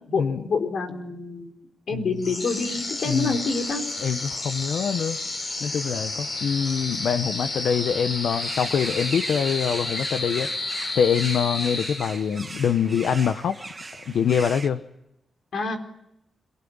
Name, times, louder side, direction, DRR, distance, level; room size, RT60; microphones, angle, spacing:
voice 1, 0.1-1.5 1.9-3.8 15.5-15.8, left 4 dB, 60° left, 4 dB, 4.2 m, -27 dB
sound 1, 2.2-12.4, left 2 dB, 40° left, 6.5 m, -31 dB
voice 2, 3.1-3.4 4.0-5.2 5.6-10.5 10.9-13.6 14.1-14.8, left 7 dB, 85° left, 9 dB, 1.0 m, -24 dB
sound 2, 8.3-14.7, right 3 dB, 20° right, 1.4 m, -38 dB
26.5 x 19.5 x 8.8 m, 0.80 s
wide cardioid pair, 165°, 0 cm